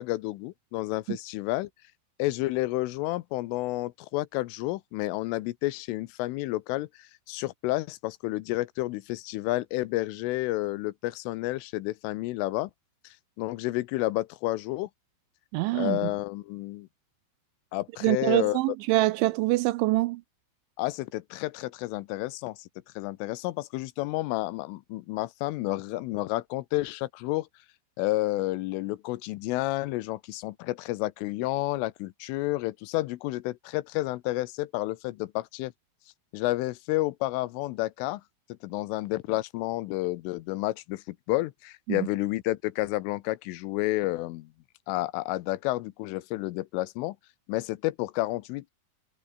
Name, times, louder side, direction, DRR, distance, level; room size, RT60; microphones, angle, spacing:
voice 1, 0.0-1.7 2.2-12.7 13.0-14.9 15.8-16.9 17.7-18.6 20.8-22.7 23.0-27.5 28.0-35.7 36.3-38.2 38.6-44.5 44.9-47.2 47.5-48.7, left 19 dB, 85° left, 3.3 m, -30 dB
voice 2, 15.5-16.0 18.0-20.2 41.9-42.0, right 20 dB, 80° right, 2.8 m, -25 dB
omnidirectional pair, 5.8 m